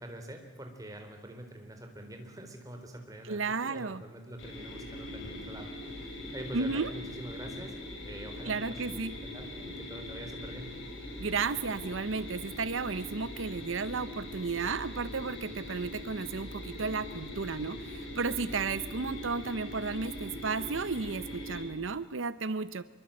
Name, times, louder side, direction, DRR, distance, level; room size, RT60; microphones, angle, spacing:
voice 1, 0.0-7.7 8.0-10.7, right 1 dB, 20° right, 4 dB, 3.9 m, -45 dB
voice 2, 3.3-4.0 6.5-6.9 8.4-9.1 11.2-22.8, right 4 dB, 85° right, 15 dB, 0.8 m, -33 dB
sound 1, 4.4-21.6, left 1 dB, 80° left, 7.9 m, -42 dB
25.5 x 23.5 x 8.8 m, 1.2 s
head